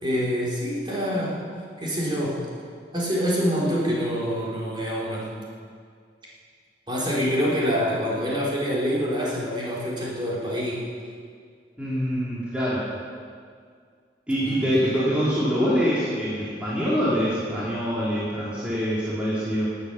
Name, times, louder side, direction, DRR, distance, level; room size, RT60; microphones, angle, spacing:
voice 1, 0.0-1.4 1.8-2.4 2.9-5.3 6.9-10.9 14.4-14.9, equal, 25° right, -6 dB, 3.7 m, -26 dB
voice 2, 11.8-12.8 14.3-19.7, equal, 5° right, -9 dB, 2.7 m, -25 dB
17.5 x 8.9 x 6.9 m, 2.1 s
head